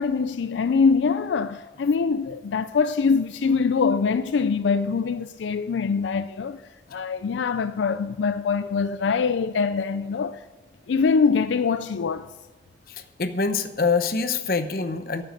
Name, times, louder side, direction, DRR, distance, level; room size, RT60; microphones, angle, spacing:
voice 1, 0.0-6.6 6.9-10.4 10.9-12.3, left 5 dB, 85° left, 0.4 m, -23 dB
voice 2, 12.9-15.2, left 4 dB, 55° left, 0.8 m, -25 dB
9.1 x 7.7 x 9.2 m
head